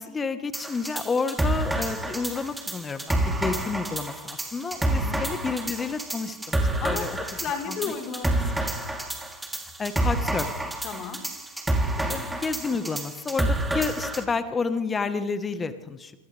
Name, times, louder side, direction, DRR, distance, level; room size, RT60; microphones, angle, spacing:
voice 1, 0.0-7.2 7.7-7.9 8.9-9.1 9.8-10.5 12.1-16.2, left 4 dB, 15° left, 10 dB, 1.5 m, -30 dB
sound 1, 0.5-14.2, right 1 dB, 5° right, 3.6 m, -29 dB
voice 2, 4.9-5.2 6.8-7.1 7.3-8.6 10.8-11.2 12.0-12.2, left 6 dB, 35° left, 1 dB, 4.4 m, -34 dB
27.5 x 26.5 x 3.5 m, 1.0 s
figure-of-eight pair, 95°, 0 cm